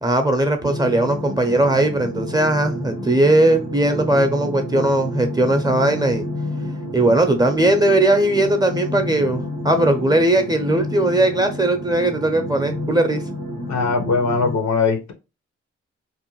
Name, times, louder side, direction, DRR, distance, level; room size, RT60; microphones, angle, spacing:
voice 1, 0.0-6.2 6.9-13.2, right 1 dB, 15° right, 0.6 m, -18 dB
sound 1, 0.6-14.6, left 1 dB, 85° left, 1.1 m, -30 dB
voice 2, 13.7-15.1, left 4 dB, 65° left, 0.7 m, -20 dB
2.6 x 2.2 x 2.9 m
supercardioid pair, 45°, 30 cm